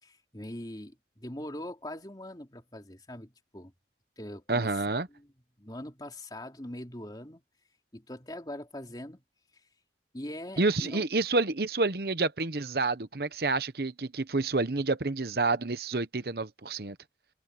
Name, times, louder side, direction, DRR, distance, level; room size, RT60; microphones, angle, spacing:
voice 1, 0.0-3.7 4.2-4.7 5.1-5.3 5.6-7.4 7.9-9.2 10.1-11.0, left 1 dB, 25° left, 3.2 m, -42 dB
voice 2, 4.5-5.1 10.6-17.0, right 3 dB, 60° right, 1.0 m, -29 dB
open air
head